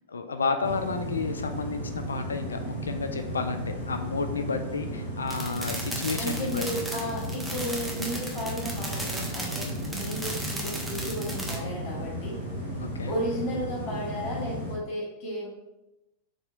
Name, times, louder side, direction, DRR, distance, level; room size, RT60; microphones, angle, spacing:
voice 1, 0.1-6.6 9.6-9.9 12.8-13.1, left 4 dB, 75° left, 7 dB, 0.3 m, -31 dB
sound 1, 0.6-14.8, equal, 90° right, 0.9 m, -35 dB
sound 2, 5.3-11.6, right 1 dB, 5° right, 0.7 m, -36 dB
voice 2, 6.2-12.4 13.0-15.5, equal, 45° left, -4 dB, 1.0 m, -34 dB
4.0 x 2.9 x 2.5 m, 0.96 s
figure-of-eight pair, 90°, 0 cm